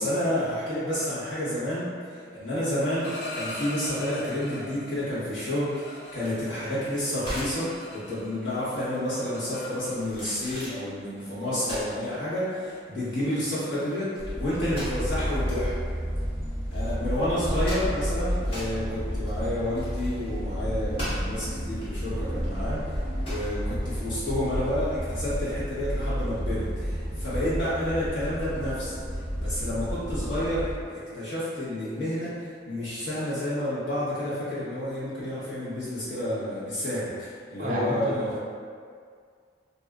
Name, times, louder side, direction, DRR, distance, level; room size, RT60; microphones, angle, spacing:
voice 1, 0.0-1.9 2.3-15.8 16.7-29.0 29.4-38.4, left 1 dB, 85° left, -11 dB, 1.1 m, -30 dB
sound 1, 2.8-4.9 5.4-8.5 8.7-10.3 11.2-11.3 11.7-12.0 12.4-12.7 13.0-13.3 13.6-13.8 14.1-19.5, left 1 dB, 65° left, 0.5 m, -42 dB
sunflower seeds bag thrown, 6.1-24.6, equal, 30° left, 0.9 m, -40 dB
sound 2, 14.2-30.8, equal, 10° right, 0.7 m, -31 dB
voice 2, 37.6-38.4, equal, 45° right, -4 dB, 0.4 m, -30 dB
2.6 x 2.3 x 2.3 m, 2.1 s
head